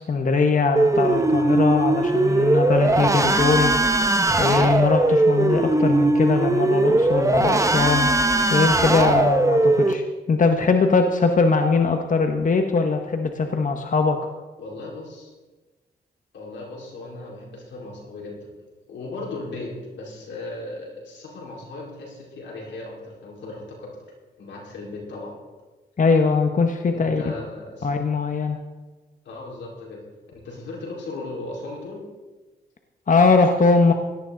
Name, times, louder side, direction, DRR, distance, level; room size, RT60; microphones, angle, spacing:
voice 1, 0.0-4.1 4.4-8.1 8.5-14.2 26.0-27.2 27.8-28.6 33.1-33.9, left 4 dB, 45° left, 5 dB, 1.2 m, -21 dB
sound 1, 0.8-9.9, right 2 dB, 15° right, 1.1 m, -20 dB
voice 2, 14.6-15.3 16.3-18.5 18.9-24.0 24.4-25.3 26.9-27.9 29.2-30.0 30.3-32.0, left 2 dB, 85° left, -2 dB, 4.5 m, -37 dB
17.5 x 12.5 x 4.0 m, 1.2 s
cardioid pair, 75°, 18 cm